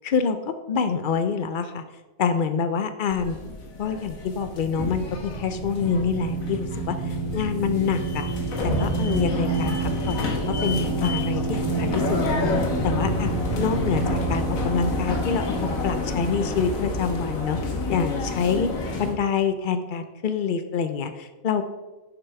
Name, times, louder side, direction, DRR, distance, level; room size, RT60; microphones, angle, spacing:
voice 1, 0.0-1.8 2.2-3.4 3.8-8.3 8.8-15.5 15.8-17.6 17.9-18.7 19.0-21.7, left 6 dB, 65° left, 10 dB, 0.5 m, -26 dB
sound 1, 3.1-19.1, left 3 dB, 90° left, 1.6 m, -29 dB
sound 2, 4.1-17.6, right 4 dB, 10° right, 2.2 m, -30 dB
6.4 x 6.1 x 4.6 m, 1.1 s
omnidirectional pair, 1.4 m